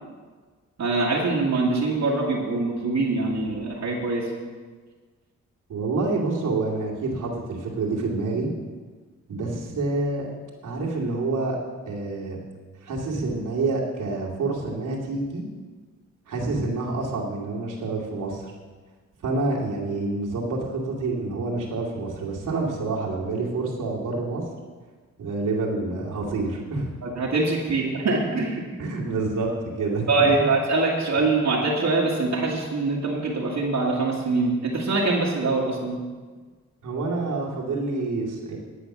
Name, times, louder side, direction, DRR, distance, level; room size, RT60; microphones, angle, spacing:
voice 1, 0.8-4.3 27.0-28.6 30.1-36.0, right 3 dB, 65° right, -4 dB, 2.0 m, -23 dB
voice 2, 5.7-8.5 9.3-10.3 10.6-11.6 11.9-12.4 12.8-15.4 16.3-18.5 19.2-24.4 25.2-26.9 28.8-30.3 36.8-38.6, right 3 dB, 85° right, -3 dB, 2.4 m, -27 dB
10.5 x 8.4 x 6.0 m, 1.4 s
cardioid pair, 95°, 30 cm